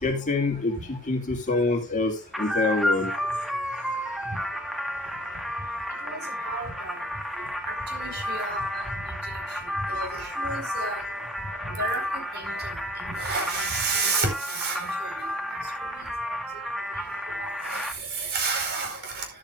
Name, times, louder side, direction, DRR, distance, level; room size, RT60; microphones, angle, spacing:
voice 1, 0.0-3.3 6.1-6.2, left 3 dB, 35° left, 2.2 m, -26 dB
sound 1, 2.3-17.9, equal, ahead, 1.6 m, -32 dB
voice 2, 6.0-7.0 7.4-11.0 11.5-15.6 15.9-16.4 17.4-19.3, right 3 dB, 50° right, 4.8 m, -32 dB
13.5 x 11.5 x 2.5 m
head